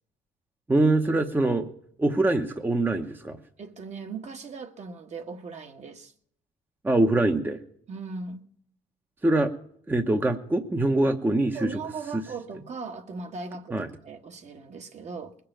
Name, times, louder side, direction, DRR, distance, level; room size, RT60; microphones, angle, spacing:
voice 1, 0.7-1.7 2.0-3.4 6.8-7.6 9.2-9.5 9.9-11.8 12.1-12.2 13.7-13.9, right 2 dB, 10° right, 0.9 m, -23 dB
voice 2, 3.6-6.1 7.9-8.5 11.5-15.3, right 4 dB, 40° right, 1.4 m, -38 dB
20.5 x 6.8 x 9.0 m
cardioid pair, 110°, 17 cm